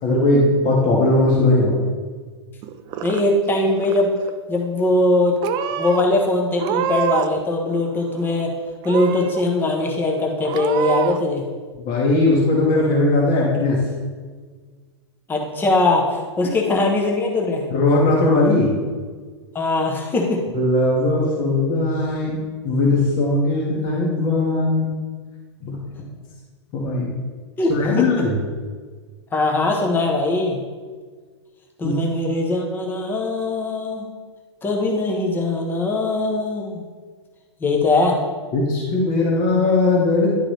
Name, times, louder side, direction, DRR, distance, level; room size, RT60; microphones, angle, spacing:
voice 1, 0.0-1.8 11.8-13.8 17.7-18.7 20.5-24.9 25.6-25.8 26.7-27.1 27.7-28.4 31.8-32.0 38.5-40.3, left 2 dB, 35° left, -4 dB, 1.4 m, -19 dB
Purr / Meow, 2.6-3.5 3.8-4.3 5.0-5.2 5.4-6.0 6.5-7.4 7.7-8.4 8.8-9.4 9.9-10.0 10.4-11.2, right 10 dB, 30° right, 0.4 m, -26 dB
voice 2, 3.0-4.2 4.5-5.4 5.8-8.5 8.8-11.4 15.3-17.7 19.5-20.4 27.6-28.3 29.3-30.6 31.8-34.1 34.6-36.8 37.6-38.2, left 2 dB, 15° left, 0 dB, 1.0 m, -21 dB
10.5 x 3.7 x 3.2 m, 1.5 s
figure-of-eight pair, 105°, 15 cm